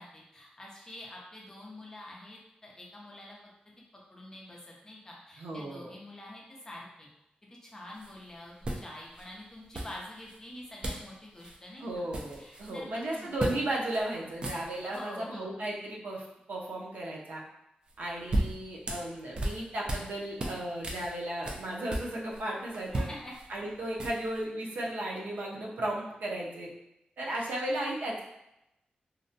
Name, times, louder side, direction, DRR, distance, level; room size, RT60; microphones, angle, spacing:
voice 1, 0.0-3.4 4.1-7.1 7.6-12.0 12.4-13.3 14.9-15.5 22.9-23.3, left 1 dB, 20° left, -3 dB, 0.5 m, -46 dB
voice 2, 5.4-6.0 11.8-17.4 18.0-23.1 23.5-26.7 27.2-28.2, right 1 dB, 80° right, -3 dB, 0.5 m, -35 dB
sound 1, 8.0-8.1 8.6-9.2 9.7-10.4 10.8-11.1 11.4-11.6 11.9-12.8 13.4-13.6 13.9-14.0 14.3-15.0 17.9-20.1 20.4-22.4 22.7-24.4, right 1 dB, 30° right, 0.3 m, -35 dB
2.5 x 2.1 x 2.6 m, 0.87 s
wide cardioid pair, 170°, 3 cm